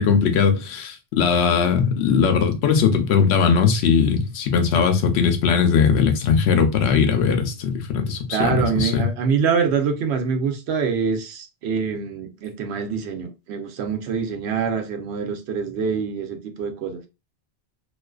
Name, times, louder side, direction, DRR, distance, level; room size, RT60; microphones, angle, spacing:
voice 1, 0.0-9.1, left 6 dB, 80° left, 0.8 m, -19 dB
voice 2, 8.3-17.0, right 6 dB, 80° right, 0.8 m, -25 dB
2.4 x 2.3 x 2.2 m
omnidirectional pair, 1.1 m